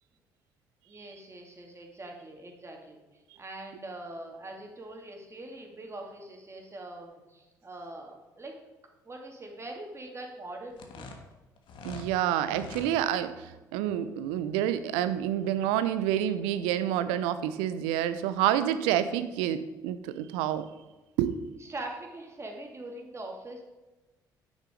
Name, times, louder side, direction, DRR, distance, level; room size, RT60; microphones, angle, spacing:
voice 1, 0.9-8.5 9.0-11.1 21.6-23.6, right 2 dB, 25° right, 1 dB, 2.4 m, -43 dB
sound 1, 10.7-12.1 12.5-12.9, left 3 dB, 60° left, 1.3 m, -44 dB
voice 2, 11.8-20.7 21.2-21.3, right 11 dB, 70° right, 12 dB, 0.6 m, -28 dB
9.3 x 6.3 x 5.1 m, 1.1 s
hypercardioid pair, 50°, 10 cm